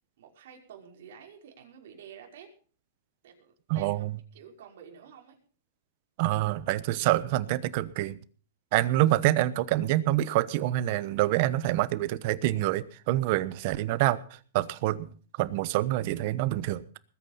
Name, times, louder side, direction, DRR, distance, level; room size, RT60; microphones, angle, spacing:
voice 1, 0.2-2.5 3.2-4.0 4.3-5.4, right 8 dB, 65° right, 1 dB, 5.5 m, -50 dB
voice 2, 3.7-4.1 6.2-8.2 8.7-15.1 15.4-16.8, right 15 dB, 45° right, 16 dB, 1.1 m, -26 dB
20.5 x 9.2 x 5.7 m, 0.40 s
hypercardioid pair, 155°, 0 cm